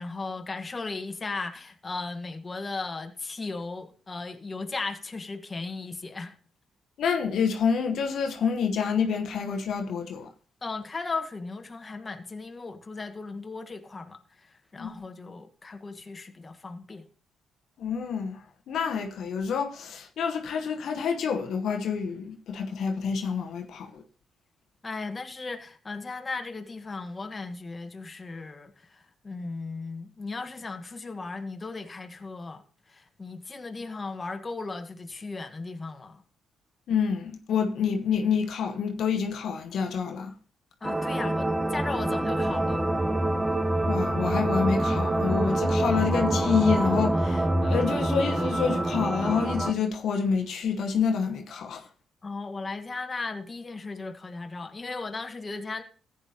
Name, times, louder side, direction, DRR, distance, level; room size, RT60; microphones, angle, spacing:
voice 1, 0.0-6.4 10.6-17.0 24.8-36.2 40.8-42.9 52.2-55.8, left 3 dB, 30° left, 1.3 m, -36 dB
voice 2, 7.0-10.3 14.8-14.9 17.8-18.4 18.7-24.0 36.9-40.3 43.9-51.9, left 6 dB, 70° left, 1.0 m, -28 dB
sound 1, 40.8-49.7, right 1 dB, 15° right, 0.9 m, -26 dB
14.5 x 9.1 x 2.8 m
supercardioid pair, 55°, 0 cm